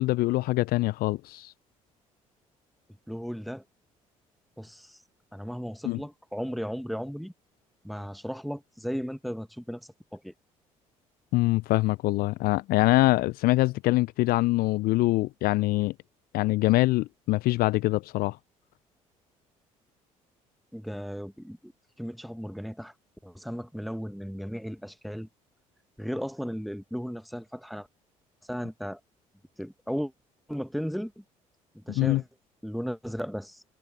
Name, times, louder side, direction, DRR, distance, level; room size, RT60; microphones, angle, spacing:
voice 1, 0.0-1.5 5.8-6.0 11.3-15.9 16.3-18.4 32.0-32.2, left 19 dB, 60° left, 0.5 m, -24 dB
voice 2, 3.1-3.6 4.6-5.0 5.3-7.3 7.8-10.3 20.7-21.7 22.0-22.9 23.2-25.3 26.0-27.9 28.5-29.0 29.6-30.1 30.5-31.2 31.7-32.3 32.6-33.6, equal, ahead, 1.6 m, -35 dB
hypercardioid pair, 50°, 18 cm